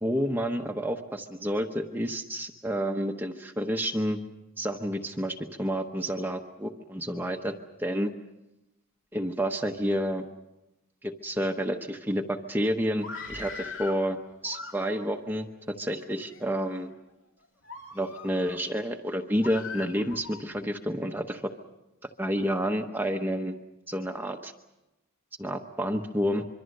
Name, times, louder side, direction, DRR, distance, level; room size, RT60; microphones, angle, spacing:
voice 1, 0.0-4.2 4.6-8.1 9.1-10.3 11.0-14.2 14.4-16.9 17.9-21.5 22.2-23.5 23.9-24.5 25.4-26.5, equal, 10° right, 4 dB, 0.9 m, -30 dB
Screaming, 12.9-14.0 14.4-15.2 15.9-16.4 16.9-17.1 17.6-18.6 19.4-20.4, left 4 dB, 60° left, 2.7 m, -41 dB
25.5 x 24.0 x 6.5 m, 0.97 s
head